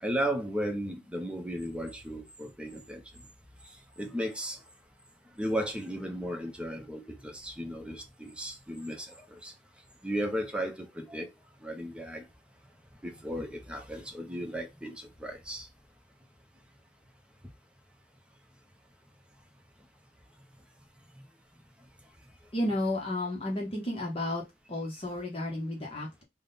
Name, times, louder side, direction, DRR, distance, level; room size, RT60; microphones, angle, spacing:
voice 1, 0.0-3.0 4.0-4.6 5.4-9.5 10.0-11.3 11.6-12.2 13.0-15.7, equal, 5° right, 0.7 m, -35 dB
voice 2, 22.5-24.4 24.7-26.2, left 1 dB, 35° left, 0.9 m, -32 dB
3.6 x 2.1 x 3.8 m
head